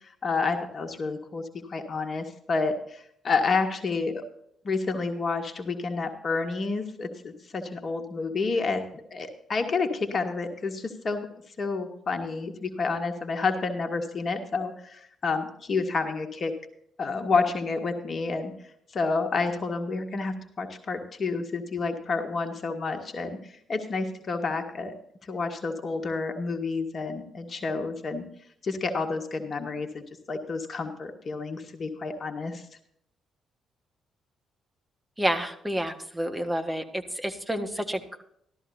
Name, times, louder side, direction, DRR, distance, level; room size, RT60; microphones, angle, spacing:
voice 1, 0.0-4.2 4.6-11.3 11.6-16.5 17.0-18.5 18.9-24.9 25.2-28.2 28.6-32.6, left 4 dB, 45° left, 5 dB, 1.7 m, -29 dB
voice 2, 35.2-38.2, right 1 dB, 10° right, 6 dB, 1.7 m, -29 dB
14.5 x 13.0 x 2.8 m, 0.69 s
hypercardioid pair, 45°, 0 cm